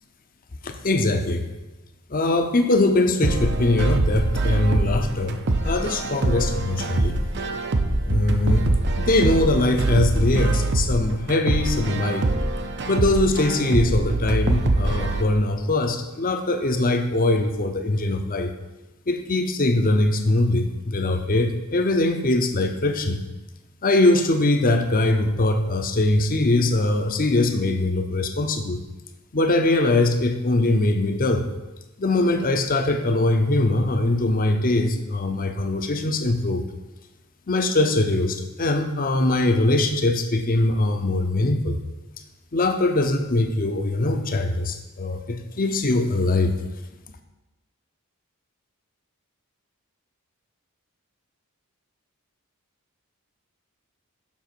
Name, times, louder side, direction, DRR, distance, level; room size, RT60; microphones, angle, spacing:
voice 1, 0.6-1.5 2.1-7.2 8.0-8.7 9.0-12.3 12.8-18.5 19.1-23.2 23.8-28.8 29.3-31.5 32.0-36.6 37.5-41.8 42.5-46.5, left 2 dB, 40° left, 6 dB, 0.7 m, -22 dB
sound 1, 3.2-15.2, right 2 dB, 50° right, 0.6 m, -24 dB
7.3 x 6.2 x 4.5 m, 1.1 s
head